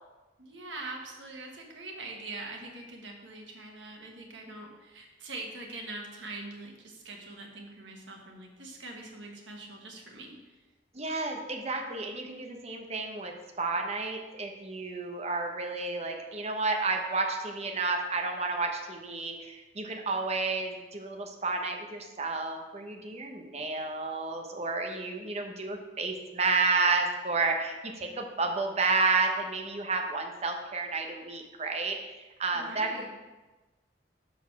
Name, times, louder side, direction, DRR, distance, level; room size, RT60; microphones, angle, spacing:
voice 1, 0.4-10.6 32.5-33.1, right 2 dB, 85° right, 1 dB, 1.4 m, -43 dB
voice 2, 10.9-33.1, right 3 dB, 35° right, 3 dB, 0.9 m, -31 dB
6.2 x 5.0 x 5.9 m, 1.1 s
head